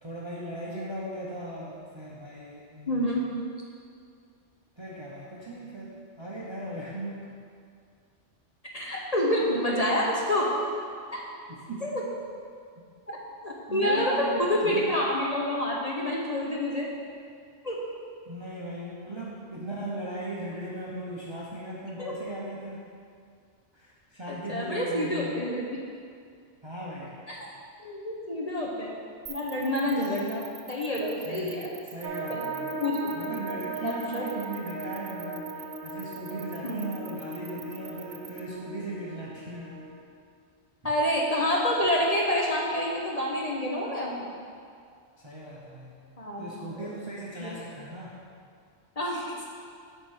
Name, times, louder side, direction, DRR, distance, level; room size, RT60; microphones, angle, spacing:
voice 1, 0.0-3.3 4.8-7.3 10.4-10.5 11.5-11.9 13.7-14.9 18.3-22.8 23.7-25.3 26.6-27.2 31.2-32.8 33.1-39.7 45.2-45.9 46.4-48.1, right 1 dB, 25° right, -6 dB, 0.8 m, -38 dB
voice 2, 2.9-3.2 8.7-10.5 11.1-11.2 11.8-12.0 13.1-13.2 13.4-16.9 17.6-17.8 22.0-22.1 24.3-25.8 27.3-27.5 27.8-28.9 29.3-31.7 32.3-32.4 32.8-33.0 33.2-33.4 33.8-34.2 36.6-36.8 40.8-44.3 46.2-46.9 47.4-47.5 49.0-49.5, left 1 dB, 35° left, -3 dB, 0.9 m, -28 dB
sound 1, 29.3-38.4, right 8 dB, 50° right, 0.4 m, -45 dB
sound 2, 32.0-40.0, right 3 dB, 75° right, 1.2 m, -38 dB
7.9 x 4.4 x 6.4 m, 2.2 s
omnidirectional pair, 1.2 m